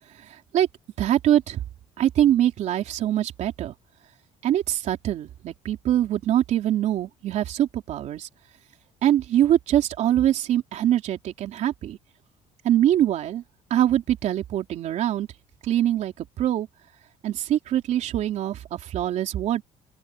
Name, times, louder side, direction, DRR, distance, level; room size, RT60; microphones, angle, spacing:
voice 1, 0.2-0.7 1.0-1.6 2.0-3.7 4.4-8.3 9.0-12.0 12.6-13.4 13.7-15.3 15.6-16.7 17.2-19.6, right 11 dB, 60° right, 3.5 m, -23 dB
open air
cardioid pair, 140°, 14 cm